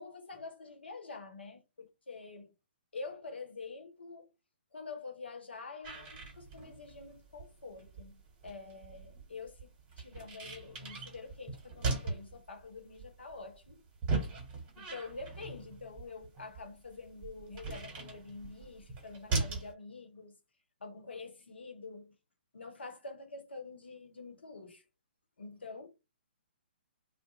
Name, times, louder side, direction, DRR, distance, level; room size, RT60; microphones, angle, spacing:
voice 1, 0.0-2.5 2.9-4.3 4.7-9.7 10.0-13.8 14.8-20.3 20.8-22.1 22.5-24.8 25.4-25.9, left 4 dB, 75° left, 0.9 m, -47 dB
sound 1, 5.8-19.7, right 3 dB, 25° right, 1.2 m, -40 dB
2.4 x 2.1 x 2.8 m
figure-of-eight pair, 130°, 6 cm